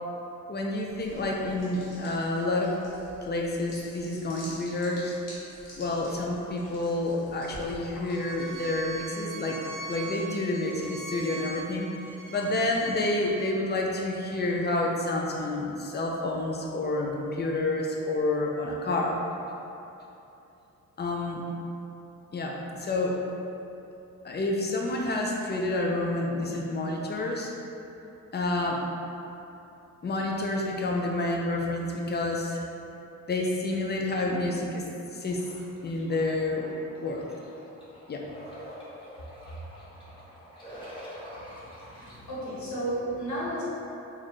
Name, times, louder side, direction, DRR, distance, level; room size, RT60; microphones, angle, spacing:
voice 1, 0.5-2.7 3.2-5.1 5.8-11.9 12.3-19.2 21.0-21.4 22.3-23.2 24.2-27.5 28.3-28.8 30.0-32.6 33.3-35.4 35.8-36.7 37.0-37.3 38.1-38.2 42.1-42.2, left 2 dB, 30° left, -1 dB, 0.6 m, -29 dB
sound 1, 0.9-9.0, left 1 dB, 80° left, 1.3 m, -48 dB
Bowed string instrument, 8.1-13.5, right 3 dB, 70° right, 0.6 m, -41 dB
sound 2, 35.2-42.1, equal, 15° left, 1.2 m, -46 dB
voice 2, 41.8-43.6, right 1 dB, 60° left, -8 dB, 1.4 m, -33 dB
4.1 x 2.6 x 3.1 m, 2.9 s
cardioid pair, 75°, 33 cm